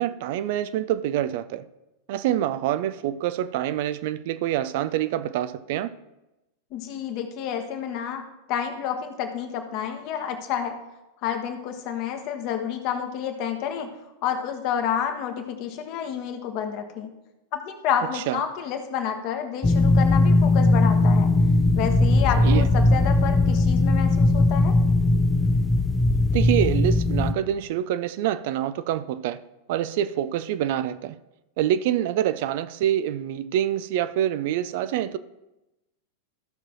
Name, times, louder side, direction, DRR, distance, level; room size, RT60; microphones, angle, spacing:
voice 1, 0.0-1.6 2.1-5.9 18.1-18.4 22.4-22.7 26.3-29.4 29.7-31.2 31.6-35.2, right 11 dB, 50° right, 0.4 m, -26 dB
voice 2, 6.7-8.2 8.5-10.8 11.2-13.9 14.2-17.1 17.5-21.3 21.7-24.8, left 8 dB, 45° left, 1.2 m, -29 dB
sound 1, 19.6-27.3, left 2 dB, 10° left, 0.5 m, -19 dB
14.5 x 6.0 x 3.0 m
figure-of-eight pair, 90°, 0 cm